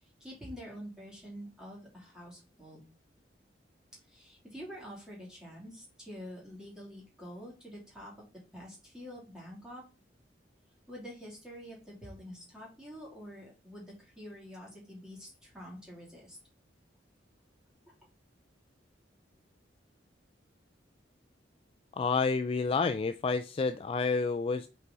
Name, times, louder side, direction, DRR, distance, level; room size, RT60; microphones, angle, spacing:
voice 1, 0.0-2.9 4.1-8.1 8.5-9.8 10.9-16.4, equal, 5° right, -4 dB, 2.7 m, -47 dB
voice 2, 22.0-24.7, left 4 dB, 30° left, 9 dB, 0.3 m, -29 dB
5.5 x 4.8 x 3.9 m, 0.32 s
head